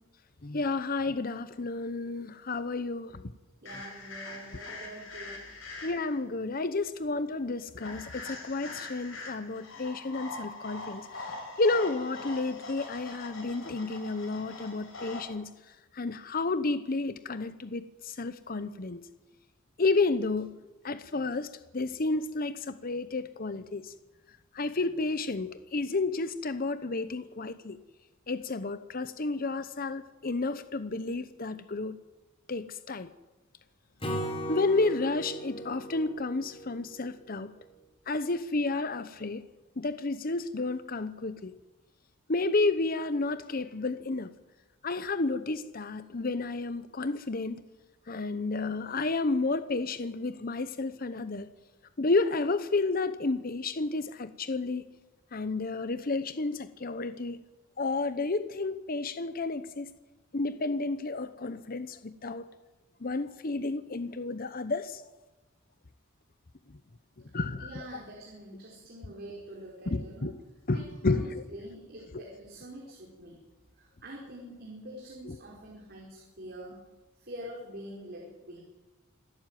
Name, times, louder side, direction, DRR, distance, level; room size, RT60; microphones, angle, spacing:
voice 1, 0.4-3.3 5.8-11.1 11.6-15.5 15.9-19.0 19.8-20.5 20.8-23.9 24.5-27.8 28.3-32.0 32.5-33.1 34.5-37.5 38.1-39.4 39.8-41.5 42.3-44.3 44.8-47.6 48.1-51.5 52.0-54.8 55.3-57.4 57.8-59.9 60.3-62.5 63.0-65.0 67.3-67.9 69.9-70.3 70.7-71.4 75.3-75.4, left 3 dB, 45° left, 0.8 m, -31 dB
voice 2, 3.6-5.5 67.6-70.3 70.7-73.4 73.8-76.8 77.2-78.6, right 1 dB, 50° right, 5.0 m, -45 dB
sound 1, 3.7-6.2 7.8-15.2, left 3 dB, 70° left, 7.1 m, -43 dB
Acoustic guitar / Strum, 34.0-37.3, equal, 25° left, 4.3 m, -37 dB
26.5 x 12.5 x 9.2 m
head